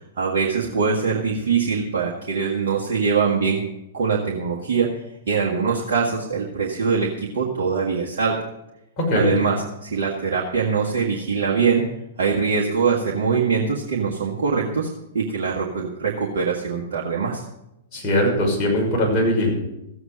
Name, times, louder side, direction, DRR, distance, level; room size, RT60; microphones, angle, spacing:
voice 1, 0.2-3.6 3.9-8.4 9.1-11.9 12.2-14.9 15.1-17.4, right 5 dB, 55° right, -3 dB, 1.7 m, -23 dB
voice 2, 9.0-9.4 17.9-19.5, left 1 dB, 25° left, -3 dB, 5.9 m, -20 dB
15.0 x 7.9 x 6.4 m, 0.88 s
figure-of-eight pair, 105°, 0 cm